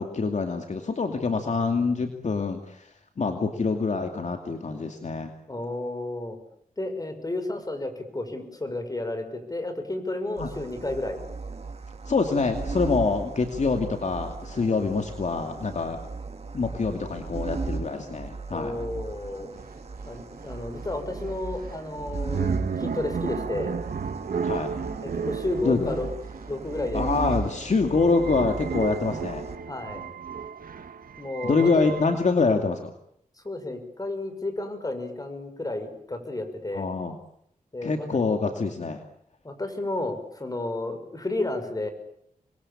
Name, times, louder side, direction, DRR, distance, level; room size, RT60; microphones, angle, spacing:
voice 1, 0.0-2.9 3.2-5.3 10.4-10.5 12.1-16.0 16.5-18.8 24.4-24.7 25.6-26.0 26.9-29.5 31.4-32.8 36.7-37.2 37.8-39.0, left 4 dB, 55° left, 5 dB, 2.6 m, -25 dB
voice 2, 5.5-6.4 6.8-11.2 14.6-14.7 18.5-19.5 20.0-23.7 24.9-26.1 26.5-27.1 29.7-30.0 31.2-31.9 33.4-36.9 37.7-38.1 39.4-41.9, left 2 dB, 25° left, 8 dB, 6.0 m, -32 dB
sound 1, 10.4-29.6, right 4 dB, 45° right, 2.6 m, -37 dB
sound 2, 19.2-19.3 19.6-32.3, right 6 dB, 80° right, 1.9 m, -34 dB
27.5 x 22.5 x 8.7 m, 0.71 s
wide cardioid pair, 90°, 15 cm